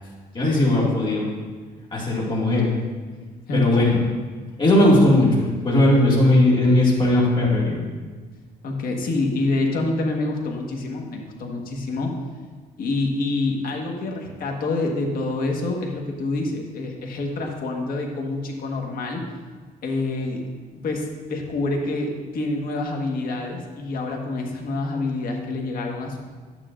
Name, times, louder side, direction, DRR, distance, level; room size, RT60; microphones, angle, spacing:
voice 1, 0.3-1.3 1.9-2.8 3.5-4.0 4.6-7.8, left 1 dB, 30° left, -5 dB, 2.2 m, -18 dB
voice 2, 3.5-4.0 5.8-6.1 8.6-12.2 12.8-19.2 19.8-20.4 20.8-26.2, left 2 dB, 60° left, 2 dB, 1.5 m, -27 dB
11.5 x 9.1 x 2.6 m, 1.4 s
cardioid pair, 110°, 17 cm